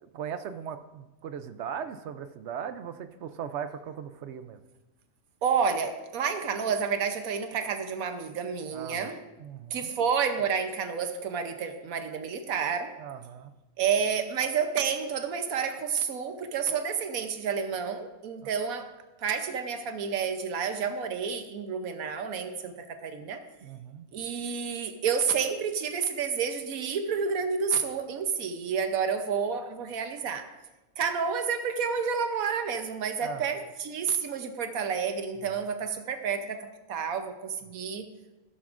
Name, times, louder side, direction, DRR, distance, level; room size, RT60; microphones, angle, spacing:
voice 1, 0.0-4.6 8.7-9.1 9.4-9.9 13.0-13.5 18.4-18.5 23.6-24.0 33.2-33.5, right 8 dB, 65° right, 11 dB, 0.8 m, -38 dB
voice 2, 5.4-9.2 9.7-12.9 13.8-18.9 19.2-23.4 24.1-30.5 31.0-38.1, right 6 dB, 80° right, 8 dB, 1.2 m, -30 dB
12.5 x 12.0 x 2.5 m, 1.1 s
omnidirectional pair, 1.4 m